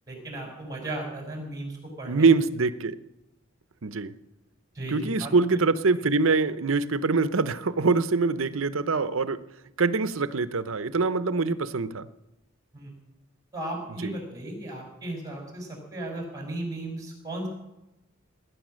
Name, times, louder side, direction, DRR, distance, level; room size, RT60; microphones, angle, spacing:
voice 1, 0.1-2.4 4.7-5.3 6.0-6.1 12.7-12.9 13.5-17.5, right 1 dB, 15° right, 1 dB, 5.3 m, -36 dB
voice 2, 2.1-3.0 3.8-4.1 4.9-9.4 9.8-12.1 14.0-14.1, right 4 dB, 75° right, 14 dB, 0.7 m, -24 dB
19.0 x 10.0 x 6.4 m, 0.94 s
head